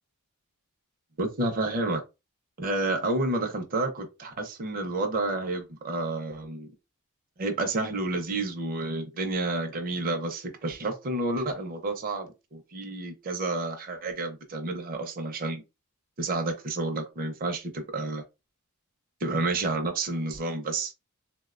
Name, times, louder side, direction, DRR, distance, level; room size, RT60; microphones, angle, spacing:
voice 1, 1.2-2.0 2.6-6.7 7.4-15.6 16.2-18.2 19.2-20.9, right 2 dB, 40° right, 0.5 m, -30 dB
3.5 x 2.1 x 2.4 m
head